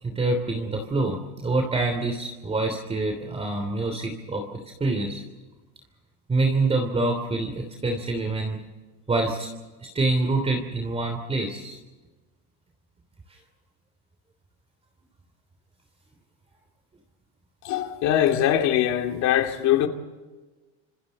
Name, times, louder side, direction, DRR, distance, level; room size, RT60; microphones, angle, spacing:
voice 1, 0.0-5.2 6.3-8.6 9.1-9.5 9.9-11.8, right 2 dB, 15° right, 3.1 m, -26 dB
voice 2, 17.6-19.9, left 11 dB, 55° left, 2.7 m, -22 dB
29.5 x 26.5 x 4.2 m
cardioid pair, 140°, 34 cm